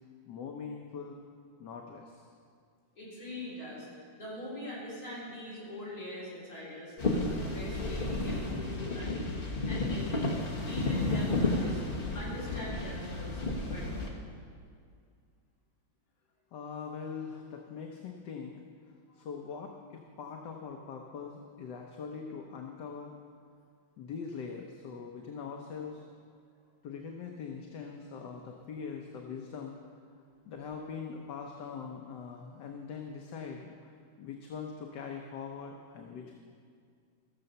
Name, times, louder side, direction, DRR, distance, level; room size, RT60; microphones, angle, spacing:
voice 1, 0.2-1.2 1.6-2.3 16.5-18.6 19.1-23.1 24.0-26.1 26.8-29.8 30.5-33.9 34.2-36.3, left 6 dB, 70° left, 2 dB, 1.4 m, -42 dB
voice 2, 3.0-3.9 4.2-9.2 9.7-10.2 10.6-11.8 12.1-14.1, left 1 dB, 50° left, -8 dB, 4.7 m, -42 dB
sound 1, 7.0-14.1, left 2 dB, 30° left, 1.3 m, -32 dB
15.0 x 6.9 x 6.7 m, 2.2 s
omnidirectional pair, 2.1 m